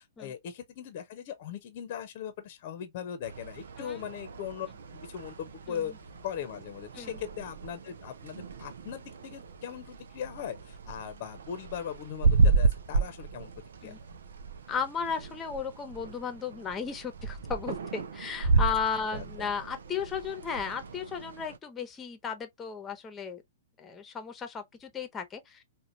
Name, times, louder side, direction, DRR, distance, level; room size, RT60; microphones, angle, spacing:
voice 1, 0.0-4.7 4.9-5.9 6.2-13.5 13.8-13.9 19.1-19.5, left 9 dB, 40° left, 0.9 m, -39 dB
sound 1, 3.2-21.6, right 4 dB, 60° right, 0.6 m, -32 dB
voice 2, 14.7-23.4 23.8-25.6, left 6 dB, 15° left, 1.0 m, -35 dB
5.0 x 2.4 x 2.7 m
figure-of-eight pair, 110°, 0 cm